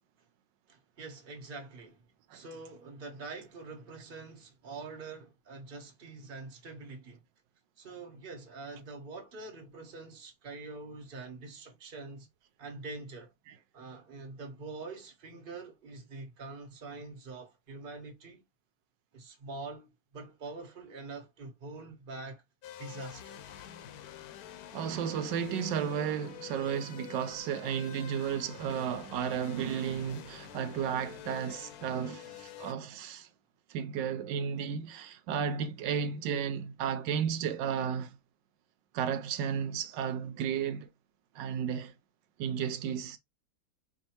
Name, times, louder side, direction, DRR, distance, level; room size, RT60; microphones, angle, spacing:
voice 1, 0.7-2.0 2.3-7.2 7.8-12.3 12.6-13.3 13.7-18.4 19.1-22.4 22.8-23.4, right 3 dB, 35° right, 1.2 m, -45 dB
sound 1, 22.6-32.7, left 11 dB, 70° left, 0.9 m, -47 dB
voice 2, 24.7-33.3 33.7-38.2 38.9-40.9 41.3-41.9 42.4-43.2, right 8 dB, 85° right, 1.2 m, -33 dB
4.6 x 2.7 x 2.9 m
omnidirectional pair, 1.9 m